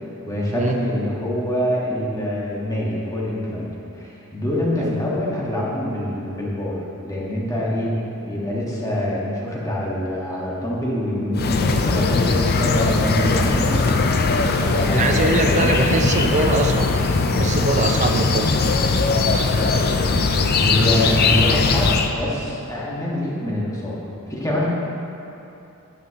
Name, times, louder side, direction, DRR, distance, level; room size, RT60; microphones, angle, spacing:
voice 1, 0.0-3.7 3.9-6.8 7.0-8.0 8.2-13.8 14.6-16.4 20.6-24.7, left 1 dB, 15° left, -5 dB, 1.5 m, -25 dB
sound 1, 11.3-22.1, left 3 dB, 45° left, 0.5 m, -19 dB
voice 2, 14.9-16.9 17.3-18.7, right 2 dB, 30° right, 4 dB, 0.5 m, -22 dB
9.5 x 9.1 x 2.9 m, 2.8 s
head